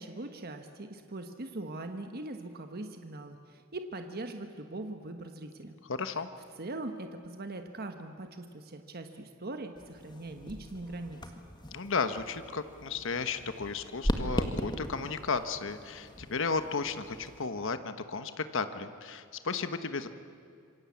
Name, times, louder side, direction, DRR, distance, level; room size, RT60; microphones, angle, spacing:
voice 1, 0.0-5.7 6.6-11.2, right 2 dB, 50° right, 6 dB, 1.3 m, -41 dB
voice 2, 5.9-6.3 11.7-20.1, left 4 dB, 65° left, 10 dB, 1.2 m, -34 dB
sound 1, 9.8-17.5, equal, 20° left, 1.9 m, -38 dB
27.0 x 24.0 x 8.6 m, 2.3 s
head